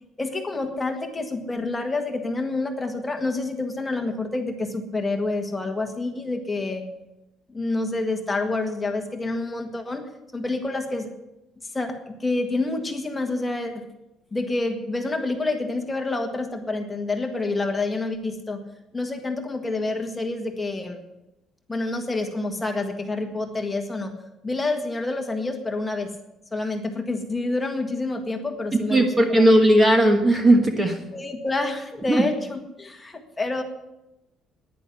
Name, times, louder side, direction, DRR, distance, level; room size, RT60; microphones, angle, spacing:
voice 1, 0.2-6.8 7.5-11.1 11.7-13.8 14.3-18.6 18.9-21.0 21.7-24.1 24.4-26.1 26.5-29.5 31.1-33.6, left 2 dB, 15° left, 4 dB, 1.7 m, -28 dB
voice 2, 28.9-31.0 32.1-32.2, right 1 dB, 15° right, 5 dB, 1.4 m, -17 dB
10.5 x 10.0 x 9.8 m, 0.93 s
cardioid pair, 150°, 0 cm